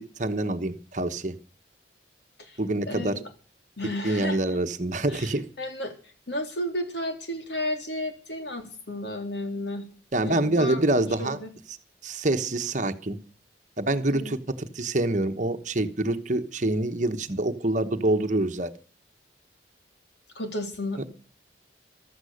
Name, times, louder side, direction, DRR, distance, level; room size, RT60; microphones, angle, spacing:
voice 1, 0.0-1.3 2.6-3.2 4.0-5.5 10.1-11.4 12.0-13.2 13.8-18.7 21.0-21.1, right 2 dB, 40° right, 8 dB, 1.1 m, -26 dB
voice 2, 2.9-3.2 3.8-4.4 5.1-9.9 10.2-11.5 14.1-14.4 20.4-21.1, left 1 dB, 70° left, 5 dB, 3.6 m, -33 dB
15.5 x 13.0 x 6.5 m, 0.39 s
head